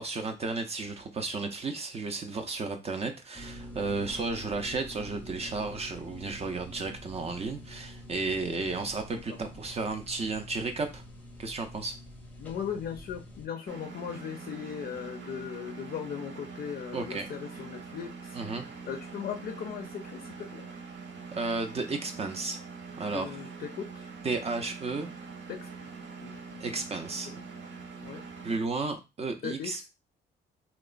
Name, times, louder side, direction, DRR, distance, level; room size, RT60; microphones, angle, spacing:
voice 1, 0.0-11.0 11.4-12.0 16.9-17.3 18.3-18.6 21.3-22.6 23.0-23.3 24.2-25.1 26.6-27.3 28.4-29.8, right 3 dB, 35° right, 6 dB, 0.4 m, -33 dB
sound 1, 3.3-13.5, equal, 10° left, 0.6 m, -46 dB
voice 2, 12.4-18.4 18.8-20.7 23.1-24.1 25.5-25.9 26.2-26.6 27.3-27.5 28.0-28.2 29.4-29.7, left 8 dB, 50° left, 5 dB, 0.4 m, -38 dB
Engine, 13.7-28.6, right 4 dB, 70° right, 0.7 m, -44 dB
2.9 x 2.1 x 2.4 m, 0.26 s
cardioid pair, 85°, 19 cm